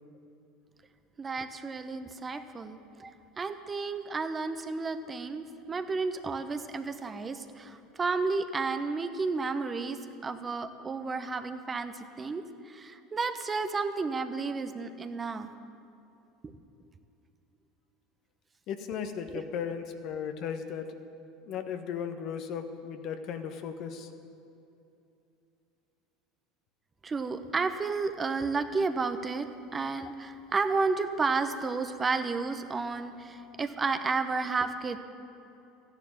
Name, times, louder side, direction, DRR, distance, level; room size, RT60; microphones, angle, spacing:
voice 1, 1.2-15.5 16.4-16.5 19.3-19.4 27.0-35.0, right 4 dB, 25° right, 9 dB, 1.0 m, -32 dB
voice 2, 18.7-20.9 21.4-24.1, left 7 dB, 55° left, 7 dB, 1.3 m, -36 dB
14.5 x 10.5 x 8.8 m, 2.7 s
hypercardioid pair, 80°, 0 cm